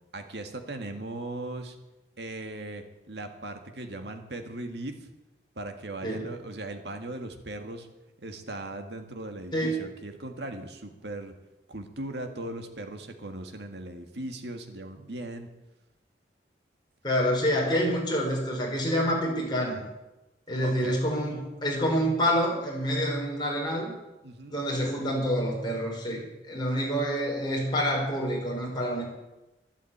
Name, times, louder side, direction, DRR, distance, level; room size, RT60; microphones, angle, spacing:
voice 1, 0.1-1.8 2.2-5.1 5.6-7.9 8.2-11.3 11.7-15.5 20.6-21.0 24.2-24.6, right 2 dB, 75° right, 5 dB, 2.0 m, -38 dB
voice 2, 17.0-19.8 20.5-24.0 24.5-29.0, equal, 25° left, -2 dB, 5.1 m, -27 dB
12.5 x 12.0 x 8.7 m, 1.0 s
head